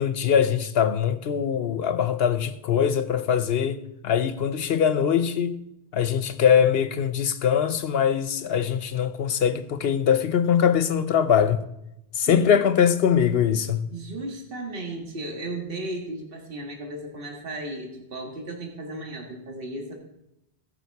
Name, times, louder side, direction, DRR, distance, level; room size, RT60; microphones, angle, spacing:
voice 1, 0.0-5.6 5.9-11.6 12.2-13.8, left 8 dB, 65° left, 1.0 m, -22 dB
voice 2, 12.3-12.6 13.9-19.9, right 2 dB, 60° right, 2.0 m, -35 dB
17.0 x 5.9 x 4.6 m
omnidirectional pair, 1.1 m